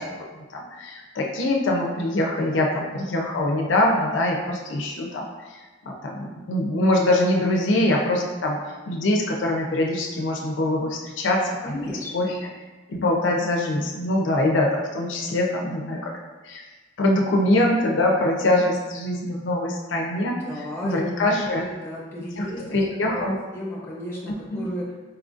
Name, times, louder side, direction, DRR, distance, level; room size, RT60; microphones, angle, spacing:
voice 1, 0.0-5.3 5.9-8.6 8.9-12.5 12.9-16.2 16.4-16.6 17.0-21.7 22.4-23.4 24.3-24.7, left 1 dB, 80° left, 0 dB, 0.5 m, -24 dB
voice 2, 11.6-12.3 20.4-21.0 21.5-22.8 23.1-23.3 23.5-24.8, left 1 dB, 15° left, -5 dB, 0.8 m, -34 dB
4.2 x 2.4 x 2.5 m, 1.3 s
head